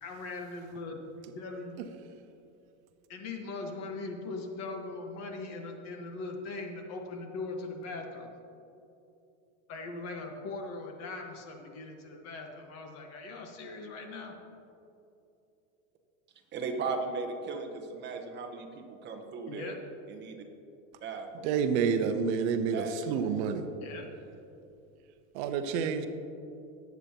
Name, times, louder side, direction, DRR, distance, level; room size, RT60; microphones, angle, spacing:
voice 1, 0.0-1.1 1.3-1.8 3.1-8.3 9.7-14.3 19.5-19.8 23.8-24.1, left 3 dB, 40° left, 3 dB, 1.5 m, -40 dB
voice 2, 16.5-19.7 20.1-20.4 21.0-21.5 22.7-23.2, right 4 dB, 25° right, 3 dB, 1.0 m, -37 dB
voice 3, 21.4-23.7 25.3-26.1, right 6 dB, 60° right, 8 dB, 0.8 m, -29 dB
19.0 x 8.2 x 3.0 m, 2.8 s
supercardioid pair, 155°, 39 cm